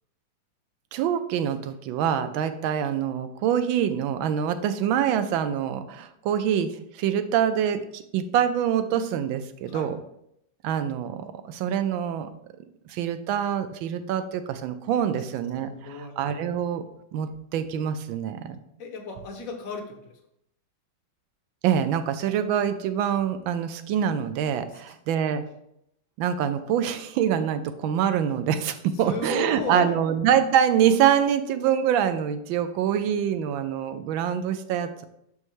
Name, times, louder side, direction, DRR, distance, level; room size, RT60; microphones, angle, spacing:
voice 1, 0.9-10.0 10.6-12.3 12.9-16.8 17.1-18.6 21.6-25.4 26.2-35.0, right 9 dB, 80° right, 10 dB, 1.3 m, -25 dB
voice 2, 15.6-16.1 18.8-20.0 29.0-30.0, left 3 dB, 55° left, 4 dB, 1.1 m, -34 dB
6.4 x 5.5 x 3.1 m, 0.76 s
omnidirectional pair, 2.2 m